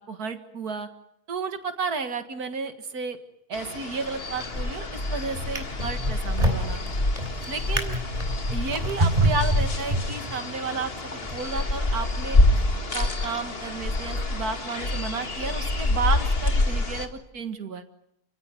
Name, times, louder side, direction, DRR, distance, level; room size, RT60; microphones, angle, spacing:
voice 1, 0.1-0.9 1.3-3.2 3.5-6.8 7.5-7.9 8.5-12.4 12.9-17.8, right 4 dB, 80° right, 8 dB, 2.3 m, -32 dB
sound 1, 3.5-17.1, left 2 dB, 40° left, 2.1 m, -27 dB
Drawer open or close, 4.4-4.8 5.3-10.5 11.2-11.4, right 1 dB, 25° right, 3.4 m, -27 dB
29.0 x 16.5 x 9.5 m, 0.81 s
omnidirectional pair, 1.6 m